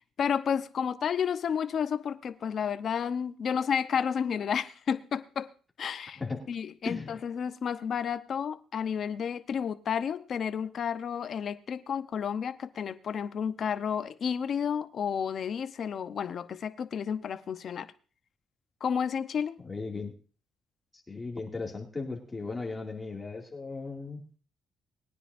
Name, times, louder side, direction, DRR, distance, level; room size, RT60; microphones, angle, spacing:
voice 1, 0.0-5.5 5.8-6.2 6.5-17.9 18.8-19.6, left 7 dB, 55° left, 0.8 m, -31 dB
voice 2, 6.8-7.2 19.6-20.1 21.1-24.4, left 3 dB, 20° left, 2.4 m, -37 dB
20.5 x 9.8 x 2.6 m
cardioid pair, 90°, 0 cm